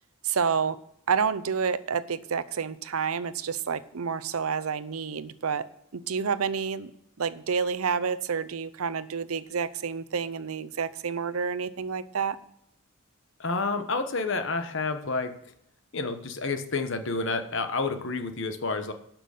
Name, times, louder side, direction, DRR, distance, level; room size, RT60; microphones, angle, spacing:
voice 1, 0.2-0.8 1.1-5.6 5.9-6.9 7.2-12.4, right 6 dB, 85° right, 14 dB, 0.7 m, -29 dB
voice 2, 13.4-15.3 15.9-18.9, left 3 dB, 60° left, 8 dB, 1.1 m, -29 dB
12.0 x 6.0 x 6.6 m, 0.73 s
head